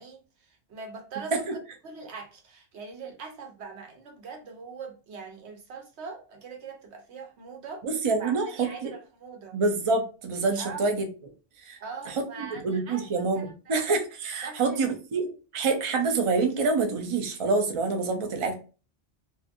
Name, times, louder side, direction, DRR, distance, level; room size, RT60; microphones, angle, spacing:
voice 1, 0.0-1.3 1.8-7.9 8.2-9.6 10.6-10.9 11.8-13.1 13.3-13.8 14.4-14.9, right 5 dB, 75° right, 1.0 m, -42 dB
voice 2, 7.8-8.9 9.5-11.1 11.6-11.8 12.1-18.6, right 3 dB, 45° right, 0.4 m, -27 dB
2.5 x 2.5 x 2.5 m
omnidirectional pair, 1.2 m